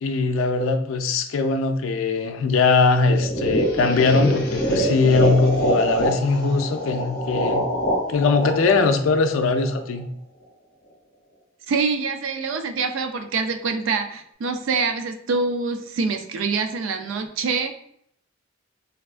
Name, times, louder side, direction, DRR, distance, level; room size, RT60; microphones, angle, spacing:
voice 1, 0.0-7.6 8.1-10.1, left 3 dB, 80° left, 8 dB, 0.4 m, -20 dB
sound 1, 3.1-10.0, equal, 55° left, 0.7 m, -25 dB
voice 2, 11.7-17.7, right 4 dB, 70° right, 7 dB, 0.4 m, -25 dB
3.4 x 2.3 x 2.4 m, 0.70 s
head